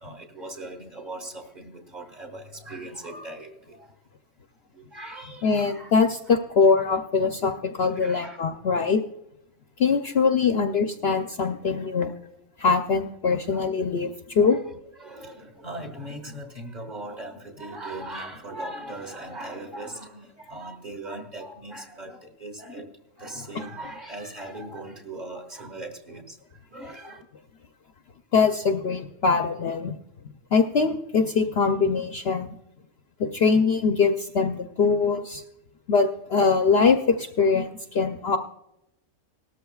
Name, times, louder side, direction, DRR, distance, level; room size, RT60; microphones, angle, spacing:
voice 1, 0.0-3.5 4.9-5.9 6.3-6.4 8.0-8.4 13.0-13.7 14.4-14.7 15.0-22.9 23.2-26.2 26.7-27.2, right 1 dB, 30° right, 2 dB, 1.7 m, -39 dB
voice 2, 5.4-9.0 9.8-12.1 12.6-14.6 28.3-30.0 30.5-32.5 33.2-35.4 35.9-38.4, left 5 dB, 55° left, 5 dB, 0.8 m, -22 dB
18.0 x 13.5 x 2.3 m, 0.85 s
omnidirectional pair, 1.4 m